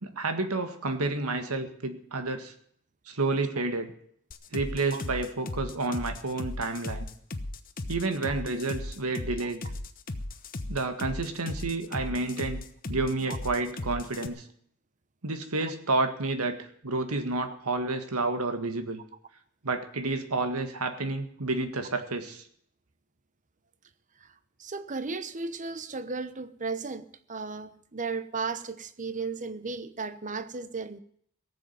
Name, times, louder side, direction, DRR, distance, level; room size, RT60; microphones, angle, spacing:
voice 1, 0.0-2.5 3.1-3.9 4.5-7.1 7.9-9.6 10.7-12.6 12.9-14.4 15.2-19.0 19.6-22.4, right 3 dB, 90° right, 1.8 m, -30 dB
sound 1, 4.3-14.3, left 2 dB, 40° left, 1.1 m, -36 dB
voice 2, 24.6-31.0, right 4 dB, 35° right, 0.9 m, -35 dB
17.5 x 7.6 x 9.2 m
head